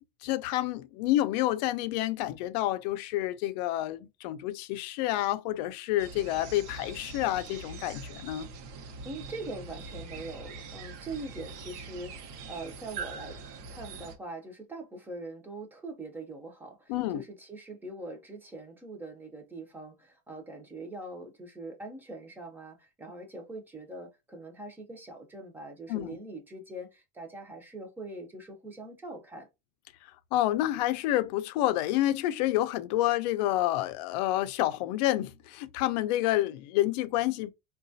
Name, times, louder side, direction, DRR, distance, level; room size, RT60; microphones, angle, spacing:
voice 1, 0.2-8.5 16.9-17.2 25.9-26.2 30.0-37.5, left 15 dB, 85° left, 0.4 m, -29 dB
sound 1, 6.0-14.2, right 4 dB, 75° right, 0.8 m, -43 dB
voice 2, 9.0-13.4 13.7-29.5, right 2 dB, 10° right, 0.5 m, -42 dB
3.9 x 2.3 x 2.6 m
cardioid pair, 175°, 21 cm